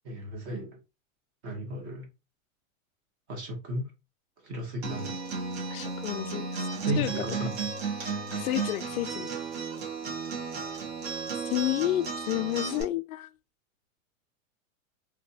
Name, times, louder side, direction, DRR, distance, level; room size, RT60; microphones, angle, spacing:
voice 1, 0.0-0.8 1.4-2.1 3.3-3.9 4.4-5.2 6.8-7.6, right 1 dB, 20° right, 0.6 m, -34 dB
Acoustic guitar, 4.8-12.8, right 4 dB, 50° right, 1.4 m, -34 dB
voice 2, 5.7-6.7 7.0-7.1 8.3-9.3 11.5-13.3, left 14 dB, 90° left, 0.5 m, -30 dB
3.2 x 2.8 x 2.6 m
supercardioid pair, 170°, 41 cm